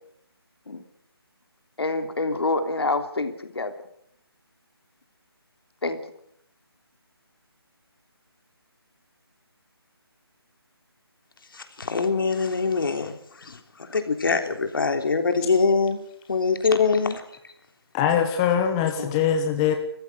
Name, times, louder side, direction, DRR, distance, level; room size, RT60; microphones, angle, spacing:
voice 1, 1.8-3.8 5.8-6.0, left 2 dB, 70° left, 3.2 m, -26 dB
voice 2, 11.5-16.0 16.3-17.5 19.0-19.2, left 4 dB, 55° left, 3.4 m, -24 dB
voice 3, 17.9-19.7, left 8 dB, 15° left, 1.2 m, -22 dB
25.0 x 15.0 x 8.0 m
figure-of-eight pair, 160°, 13 cm